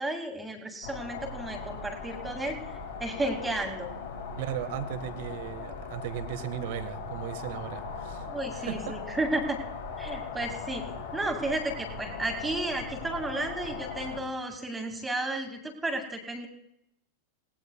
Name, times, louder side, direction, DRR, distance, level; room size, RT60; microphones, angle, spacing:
voice 1, 0.0-2.6 3.0-3.9 8.3-9.6 10.0-10.9 11.1-16.5, right 2 dB, 10° right, 4 dB, 2.2 m, -33 dB
sound 1, 0.8-14.2, left 5 dB, 80° left, 7.2 m, -39 dB
voice 2, 4.4-9.0, right 11 dB, 50° right, 11 dB, 1.4 m, -37 dB
27.0 x 18.0 x 2.3 m, 0.80 s
figure-of-eight pair, 90°, 0 cm